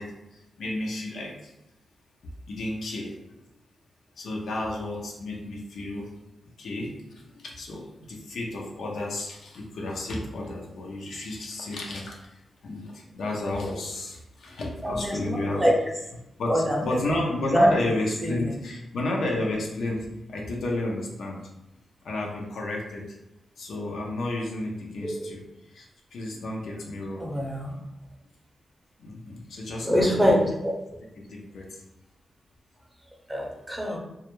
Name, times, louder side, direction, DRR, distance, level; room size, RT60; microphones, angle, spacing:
voice 1, 0.0-1.5 2.5-3.3 4.2-6.1 6.6-15.7 16.4-21.4 22.0-23.2 23.6-27.3 29.0-30.3 31.2-31.8, left 2 dB, 80° left, -1 dB, 0.5 m, -32 dB
voice 2, 14.8-15.7 16.5-16.8 17.5-17.7 18.2-18.3 25.0-25.1 27.2-27.7 29.8-30.7 33.3-34.0, equal, 10° right, 0 dB, 0.6 m, -24 dB
2.3 x 2.0 x 2.9 m, 0.90 s
cardioid pair, 65°, 0 cm